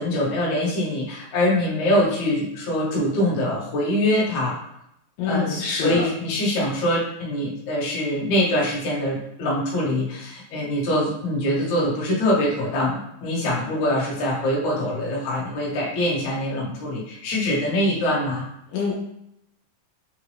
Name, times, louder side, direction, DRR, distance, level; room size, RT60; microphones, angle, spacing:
voice 1, 0.0-4.6 5.2-18.5, left 1 dB, 60° left, -5 dB, 2.2 m, -24 dB
voice 2, 5.2-6.0 18.7-18.9, left 5 dB, 75° left, -5 dB, 2.4 m, -25 dB
6.2 x 2.5 x 3.3 m, 0.81 s
omnidirectional pair, 4.3 m